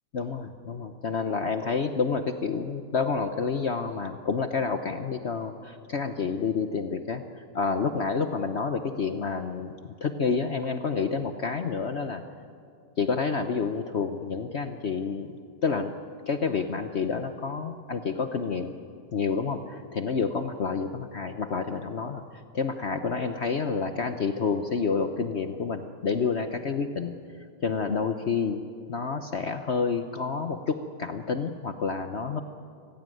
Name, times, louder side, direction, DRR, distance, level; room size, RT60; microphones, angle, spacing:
voice 1, 0.1-7.2 7.5-9.7 10.0-12.2 13.0-15.3 15.6-15.9 16.3-18.7 19.1-22.2 22.5-27.1 27.6-28.6 28.9-32.4, left 5 dB, 80° left, 8 dB, 0.6 m, -29 dB
25.0 x 16.5 x 9.2 m, 2.3 s
omnidirectional pair, 2.4 m